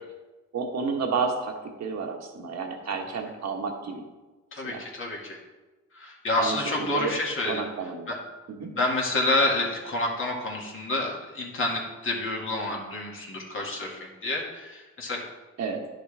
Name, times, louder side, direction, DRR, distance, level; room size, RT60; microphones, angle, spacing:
voice 1, 0.5-1.5 1.8-4.0 4.6-4.8 6.4-7.1 7.5-8.1 8.6-8.7 15.6-15.8, right 5 dB, 60° right, 2 dB, 1.5 m, -30 dB
voice 2, 4.5-5.4 5.9-7.6 8.1-8.2 8.7-15.3, left 2 dB, 45° left, -1 dB, 2.0 m, -28 dB
10.5 x 6.3 x 3.4 m, 1.2 s
cardioid pair, 90°, 30 cm